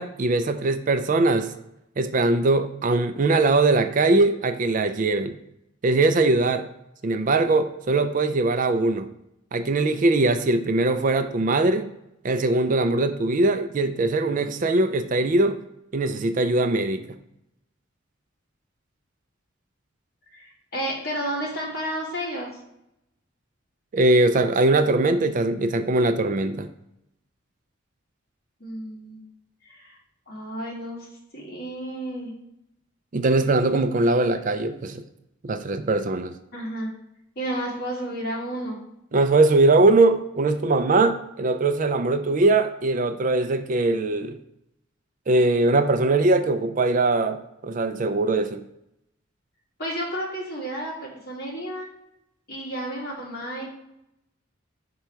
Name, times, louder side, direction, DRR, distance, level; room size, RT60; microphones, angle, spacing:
voice 1, 0.0-1.5 2.0-5.3 5.8-6.6 7.0-9.1 9.5-11.9 12.2-15.6 15.9-17.0 23.9-26.7 33.1-35.0 35.4-36.3 39.1-44.4 45.3-48.6, right 2 dB, 40° right, 9 dB, 0.4 m, -21 dB
voice 2, 20.3-22.5 28.6-29.2 29.6-30.0 30.3-31.1 31.3-32.3 36.5-36.9 37.4-38.8 49.8-51.9 52.5-53.7, right 1 dB, 50° left, -4 dB, 2.0 m, -31 dB
5.4 x 4.5 x 4.5 m, 0.84 s
head